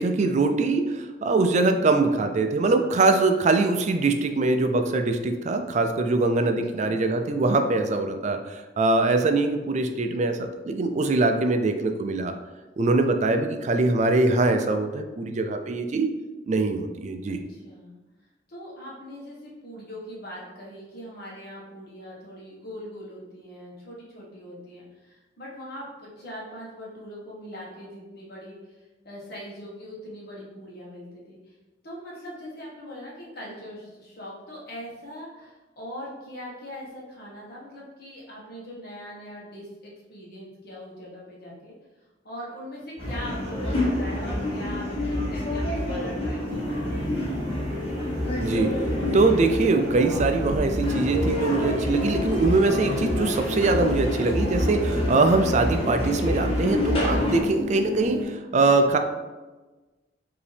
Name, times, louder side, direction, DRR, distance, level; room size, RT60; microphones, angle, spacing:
voice 1, 0.0-12.3 12.8-16.1 16.5-17.4 48.4-48.7 49.1-59.0, right 3 dB, 35° right, 6 dB, 0.4 m, -23 dB
voice 2, 6.4-6.9 17.3-17.9 18.5-31.5 31.8-41.7 42.2-47.1 58.6-59.0, equal, 55° left, -5 dB, 1.4 m, -41 dB
sound 1, 43.0-57.4, left 1 dB, 30° left, 1.1 m, -28 dB
sound 2, 46.5-58.2, equal, 70° right, 0.8 m, -34 dB
4.9 x 2.8 x 3.3 m, 1.2 s
head